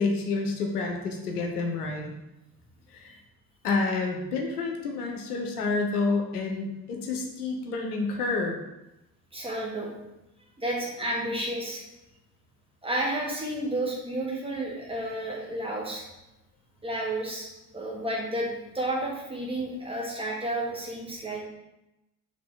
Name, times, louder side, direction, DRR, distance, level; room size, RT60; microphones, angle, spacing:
voice 1, 0.0-2.1 2.9-3.1 3.6-8.6, left 3 dB, 75° left, 2 dB, 0.7 m, -29 dB
voice 2, 9.3-9.9 10.6-11.8 12.8-16.0 16.8-17.5 17.7-21.4, right 1 dB, 10° right, -3 dB, 1.2 m, -31 dB
3.9 x 3.0 x 3.7 m, 0.93 s
figure-of-eight pair, 55°, 46 cm